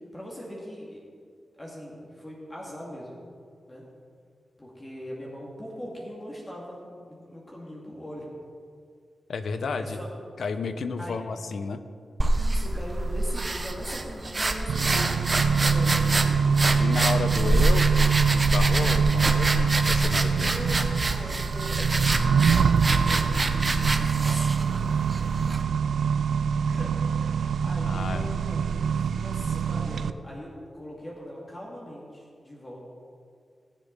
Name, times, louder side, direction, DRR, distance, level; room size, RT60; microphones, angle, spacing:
voice 1, 0.1-1.0 1.5-3.1 3.7-3.8 4.6-8.3 9.7-10.1 11.0-11.3 12.3-16.5 17.3-17.6 20.3-21.9 22.1-24.9 26.6-32.8, equal, 25° left, -4 dB, 2.3 m, -41 dB
voice 2, 9.3-10.0 10.4-11.8 16.8-20.5 27.8-28.3, left 4 dB, 80° left, 10 dB, 0.7 m, -32 dB
sound 1, 12.2-25.6, right 2 dB, 35° right, 0.9 m, -26 dB
Accelerating revving vroom, 14.7-30.1, right 6 dB, 85° right, 0.3 m, -24 dB
18.5 x 7.5 x 4.1 m, 2.2 s
cardioid pair, 75°, 0 cm